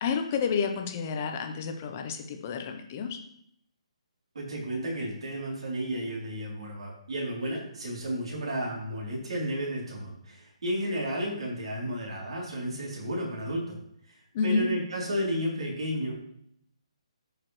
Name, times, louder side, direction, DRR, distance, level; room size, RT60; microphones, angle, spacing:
voice 1, 0.0-3.2 14.3-14.7, left 5 dB, 20° left, 5 dB, 0.6 m, -30 dB
voice 2, 4.3-13.8 14.4-16.3, equal, 60° right, -3 dB, 3.0 m, -32 dB
12.0 x 5.0 x 3.1 m, 0.72 s
hypercardioid pair, 175°, 4 cm